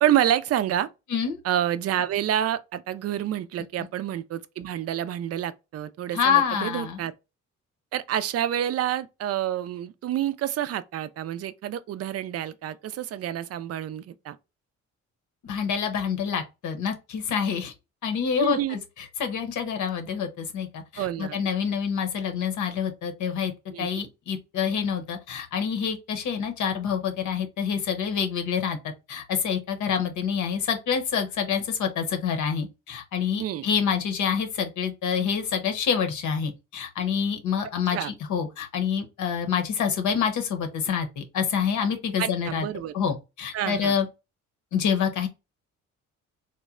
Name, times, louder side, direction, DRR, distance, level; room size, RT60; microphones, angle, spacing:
voice 1, 0.0-0.9 1.4-7.1 7.9-14.4 18.4-18.8 21.0-21.4 23.7-24.1 33.4-33.7 37.9-38.1 42.2-42.9 43.5-43.9, right 11 dB, 55° right, 0.4 m, -28 dB
voice 2, 6.1-7.0 15.4-17.7 18.0-23.5 23.8-28.8 29.1-42.7 42.9-44.1 44.7-45.3, left 7 dB, 75° left, 0.8 m, -27 dB
3.0 x 2.1 x 3.5 m
cardioid pair, 90°, 30 cm